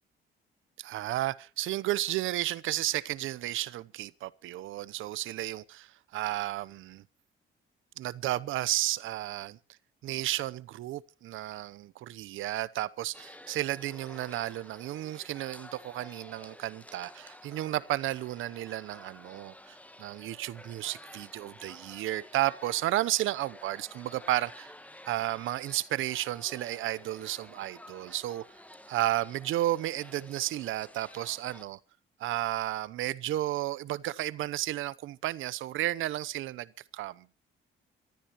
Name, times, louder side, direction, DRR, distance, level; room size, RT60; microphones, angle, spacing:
voice 1, 0.8-7.0 8.0-9.6 10.0-24.7 25.1-28.4 28.9-31.8 32.2-37.3, right 14 dB, 80° right, 0.8 m, -33 dB
sound 1, 13.1-31.7, left 1 dB, 5° left, 1.7 m, -52 dB
26.5 x 13.5 x 3.0 m
cardioid pair, 90°, 20 cm